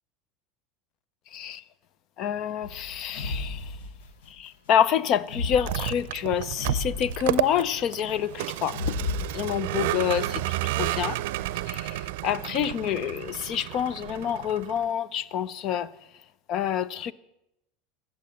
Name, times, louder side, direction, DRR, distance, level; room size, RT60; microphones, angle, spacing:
voice 1, 1.3-1.6 2.2-3.7 4.3-9.0 9.3-11.2 11.7-15.9 16.5-17.1, left 9 dB, 50° left, 0.7 m, -28 dB
sound 1, 2.6-4.3 5.2-7.8 8.7-9.2, left 2 dB, 80° left, 1.4 m, -33 dB
Vehicle, 5.5-14.9, right 15 dB, 75° right, 0.5 m, -31 dB
15.0 x 7.1 x 9.2 m
hypercardioid pair, 95°, 0 cm